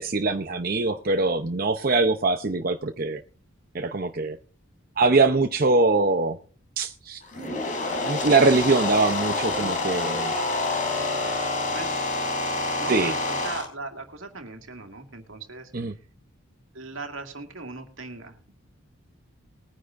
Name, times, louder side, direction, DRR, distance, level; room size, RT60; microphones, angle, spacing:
voice 1, 0.0-3.2 3.7-4.4 5.0-6.4 6.8-7.2 8.0-10.7 12.9-13.2 15.7-15.9, right 3 dB, 45° right, 0.7 m, -23 dB
sound 1, 7.2-13.7, left 3 dB, 35° left, 3.7 m, -27 dB
voice 2, 10.7-11.4 11.7-12.3 12.8-15.7 16.7-18.4, right 3 dB, 70° right, 2.2 m, -39 dB
21.0 x 9.9 x 2.6 m
head